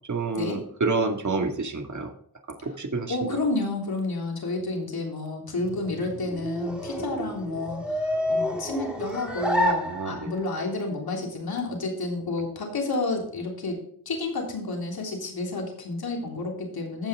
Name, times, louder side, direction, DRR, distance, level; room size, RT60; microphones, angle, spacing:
voice 1, 0.0-2.1 2.5-3.4 9.9-10.3, right 3 dB, 50° right, 5 dB, 2.0 m, -29 dB
voice 2, 3.1-13.8 14.0-17.1, left 2 dB, 70° left, 1 dB, 3.4 m, -30 dB
sound 1, 5.6-10.6, equal, 5° right, 2.8 m, -29 dB
15.0 x 5.9 x 3.6 m, 0.63 s
cardioid pair, 55°, 38 cm